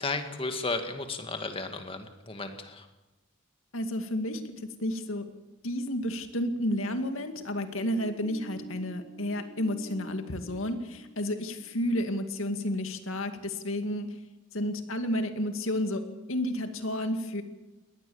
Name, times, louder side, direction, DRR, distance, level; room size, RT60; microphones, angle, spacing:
voice 1, 0.0-2.9, left 3 dB, 25° left, 6 dB, 2.1 m, -34 dB
voice 2, 3.7-4.4 4.8-5.2 5.6-14.1 14.5-16.0 16.3-17.4, left 1 dB, 90° left, 7 dB, 2.3 m, -31 dB
sound 1, 7.4-12.1, right 2 dB, 25° right, 3.5 m, -49 dB
22.0 x 18.0 x 7.2 m, 1.0 s
head